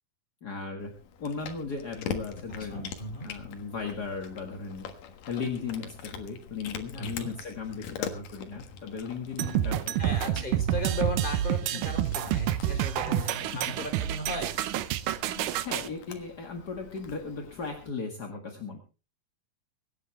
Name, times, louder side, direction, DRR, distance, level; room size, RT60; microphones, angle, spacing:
voice 1, 0.4-0.9 1.2-2.9 3.2-10.4 11.7-11.8 13.1-13.6 15.1-18.8, left 5 dB, 40° left, 2 dB, 1.7 m, -37 dB
Cat, 0.8-17.9, left 7 dB, 70° left, 3.1 m, -44 dB
voice 2, 2.7-3.3 7.0-7.3 10.0-14.5, left 1 dB, 15° left, 4 dB, 3.6 m, -36 dB
sound 1, 9.4-15.9, right 12 dB, 75° right, 2.3 m, -28 dB
24.5 x 10.0 x 3.3 m, 0.33 s
omnidirectional pair, 4.1 m